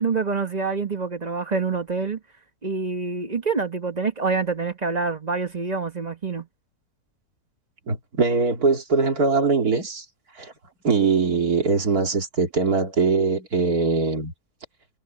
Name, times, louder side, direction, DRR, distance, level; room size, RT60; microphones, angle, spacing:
voice 1, 0.0-2.2 2.6-6.5, right 4 dB, 30° right, 1.1 m, -26 dB
voice 2, 7.9-10.0 10.4-10.5 10.8-14.3, right 4 dB, 60° right, 3.3 m, -22 dB
omnidirectional pair, 1.8 m